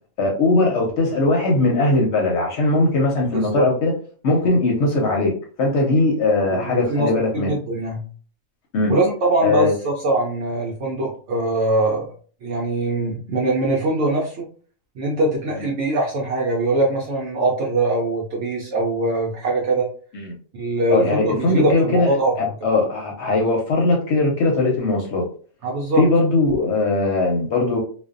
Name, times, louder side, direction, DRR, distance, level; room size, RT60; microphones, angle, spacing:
voice 1, 0.2-3.9 4.2-5.3 5.6-7.5 8.7-8.9 9.4-9.7 15.6-15.7 20.1-20.3 20.9-25.3 26.0-27.8, left 2 dB, 65° left, 0 dB, 0.8 m, -19 dB
voice 2, 3.3-3.7 6.5-8.0 8.9-12.1 12.4-14.5 15.0-19.9 20.5-22.3 25.6-26.0, right 2 dB, 70° right, -2 dB, 0.9 m, -22 dB
2.5 x 2.2 x 2.4 m, 0.42 s
omnidirectional pair, 1.4 m